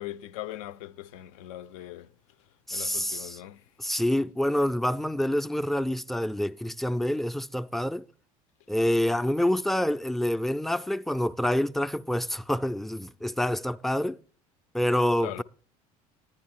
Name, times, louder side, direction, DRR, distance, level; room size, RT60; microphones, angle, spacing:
voice 1, 0.0-2.1 2.7-3.7 15.2-15.4, left 13 dB, 65° left, 0.4 m, -40 dB
voice 2, 2.7-3.4 3.8-8.1 8.7-14.2 14.7-15.4, left 1 dB, ahead, 0.4 m, -27 dB
10.5 x 10.0 x 4.4 m
figure-of-eight pair, 65°, 19 cm